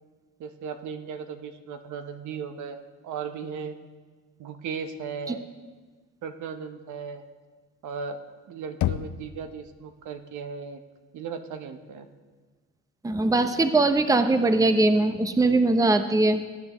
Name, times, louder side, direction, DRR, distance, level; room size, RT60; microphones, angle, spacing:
voice 1, 0.4-3.8 4.4-5.5 6.2-7.3 7.8-8.2 8.5-10.8 11.1-12.1, right 6 dB, 75° right, 8 dB, 0.9 m, -36 dB
Knock, 8.8-9.7, left 13 dB, 75° left, 0.5 m, -29 dB
voice 2, 13.0-16.5, right 2 dB, 10° right, 9 dB, 0.7 m, -21 dB
19.0 x 9.7 x 3.0 m, 1.4 s
cardioid pair, 90°, 30 cm